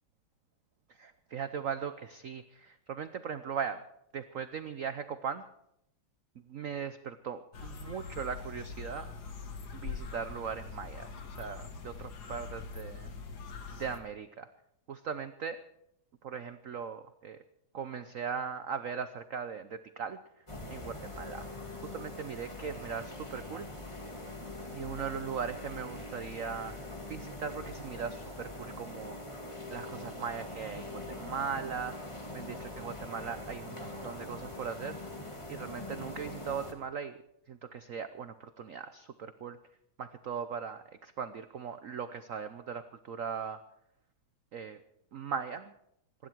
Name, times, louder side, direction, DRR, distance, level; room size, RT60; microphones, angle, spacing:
voice 1, 0.9-3.8 4.1-5.5 6.5-9.1 9.7-13.1 13.7-14.5 14.9-15.6 16.2-17.4 17.7-21.4 21.8-23.7 24.7-26.8 27.1-29.2 29.7-35.1 35.5-37.2 37.5-39.6 40.0-43.6 44.5-44.8 45.1-45.7, right 7 dB, 60° right, 11 dB, 0.8 m, -39 dB
sound 1, 7.5-14.0, left 5 dB, 55° left, 2.0 m, -43 dB
sound 2, 20.5-36.7, left 2 dB, 15° left, 2.2 m, -43 dB
26.5 x 11.5 x 4.6 m, 0.78 s
omnidirectional pair, 2.2 m